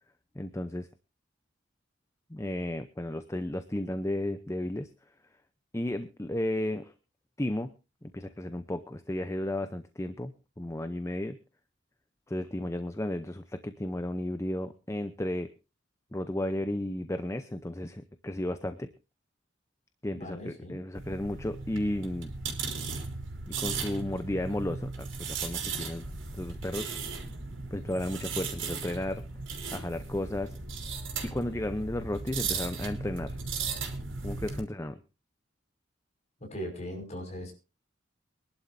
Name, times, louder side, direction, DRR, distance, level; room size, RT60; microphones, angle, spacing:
voice 1, 0.3-0.9 2.3-4.9 5.7-6.9 7.4-7.7 8.0-10.3 10.6-11.4 12.3-15.5 16.1-18.9 20.0-22.3 23.5-26.1 26.3-26.9 27.7-29.2 29.7-30.6 31.2-33.4 34.2-35.0, left 1 dB, 15° left, 10 dB, 0.7 m, -33 dB
voice 2, 20.1-20.8 36.4-37.5, equal, 35° left, 2 dB, 5.7 m, -39 dB
sound 1, 20.9-34.6, right 4 dB, 80° right, 4.1 m, -36 dB
24.0 x 11.5 x 2.7 m, 0.29 s
head